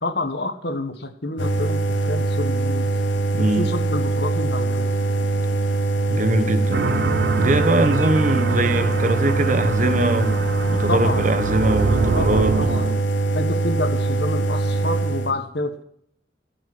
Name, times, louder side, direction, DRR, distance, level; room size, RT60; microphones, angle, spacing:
voice 1, 0.0-2.9 3.4-4.9 10.9-11.2 12.1-12.9 13.3-15.8, left 2 dB, 60° left, 1.5 m, -28 dB
sound 1, 1.4-15.3, right 2 dB, 90° left, 1.6 m, -22 dB
voice 2, 3.3-3.7 6.1-12.5, right 1 dB, 40° right, 1.2 m, -22 dB
sound 2, 6.7-13.0, right 4 dB, 60° right, 0.5 m, -26 dB
15.0 x 7.0 x 7.7 m
head